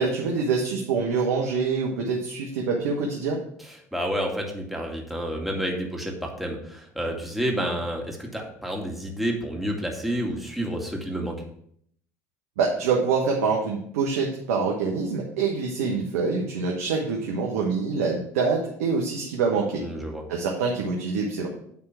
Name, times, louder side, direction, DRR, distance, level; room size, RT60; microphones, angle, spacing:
voice 1, 0.0-3.4 12.6-19.8 20.3-21.5, right 4 dB, 80° right, -1 dB, 1.2 m, -25 dB
voice 2, 3.9-11.4 19.8-20.2, equal, ahead, 0 dB, 2.3 m, -29 dB
9.5 x 3.7 x 5.8 m, 0.67 s
hypercardioid pair, 70°, 8 cm